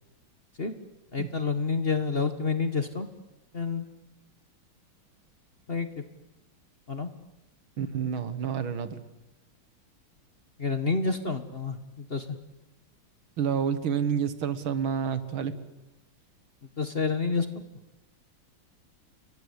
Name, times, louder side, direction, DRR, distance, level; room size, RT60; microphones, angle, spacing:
voice 1, 1.1-3.1 3.5-3.8 5.7-5.9 6.9-7.1 10.6-12.3 16.8-17.5, left 4 dB, 35° left, 9 dB, 1.3 m, -28 dB
voice 2, 7.8-9.0 13.4-15.5, right 7 dB, 75° right, 12 dB, 2.3 m, -29 dB
30.0 x 23.0 x 8.2 m, 0.99 s
omnidirectional pair, 2.3 m